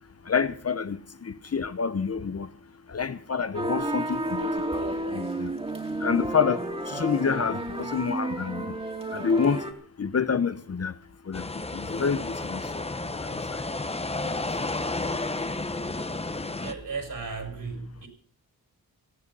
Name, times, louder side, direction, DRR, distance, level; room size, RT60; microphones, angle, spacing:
voice 1, 0.2-2.5 2.9-5.5 6.0-8.8 9.1-9.7 10.0-11.0 11.2-13.7 14.2-14.7, left 6 dB, 40° left, 1.0 m, -28 dB
sound 1, 3.5-9.7, right 1 dB, 15° right, 2.6 m, -31 dB
sound 2, 11.3-16.7, left 2 dB, 15° left, 1.0 m, -32 dB
voice 2, 16.6-18.1, right 4 dB, 60° right, 5.4 m, -35 dB
18.0 x 13.5 x 5.5 m
wide cardioid pair, 95°, 36 cm